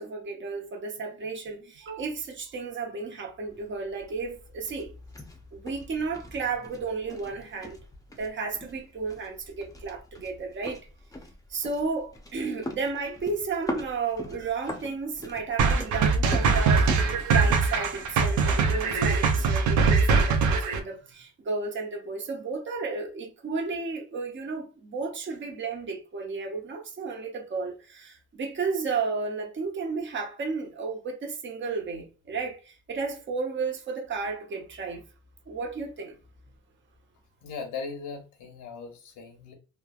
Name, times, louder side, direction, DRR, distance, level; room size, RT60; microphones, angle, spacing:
voice 1, 0.0-4.9 5.5-7.8 8.2-10.9 11.5-16.9 17.2-35.0 35.5-36.2, right 4 dB, 40° right, 0.8 m, -33 dB
sound 1, 3.5-20.5, left 1 dB, 10° left, 0.6 m, -43 dB
sound 2, 15.6-20.8, right 4 dB, 80° right, 0.6 m, -22 dB
voice 2, 37.4-39.5, left 5 dB, 90° left, 0.9 m, -38 dB
3.2 x 2.1 x 2.3 m
cardioid pair, 90°, 30 cm